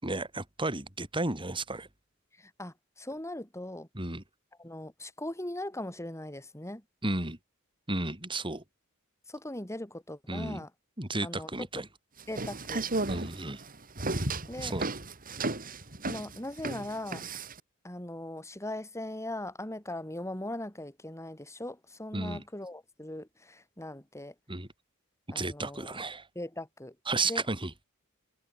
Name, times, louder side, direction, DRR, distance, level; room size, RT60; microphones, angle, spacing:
voice 1, 0.0-1.9 3.9-4.2 7.0-7.4 7.9-8.6 10.3-10.6 11.0-11.9 13.1-13.6 14.6-14.9 22.1-22.4 24.5-24.7 25.3-26.3 27.1-27.7, right 2 dB, 25° right, 5.8 m, -33 dB
voice 2, 2.4-3.9 4.6-6.8 9.3-10.7 11.2-11.8 12.3-12.9 14.5-14.7 16.1-17.3 17.8-24.3 25.3-26.0 26.4-27.0 27.3-27.4, left 1 dB, 15° left, 6.8 m, -40 dB
sound 1, 12.2-17.6, right 2 dB, 40° right, 4.6 m, -34 dB
head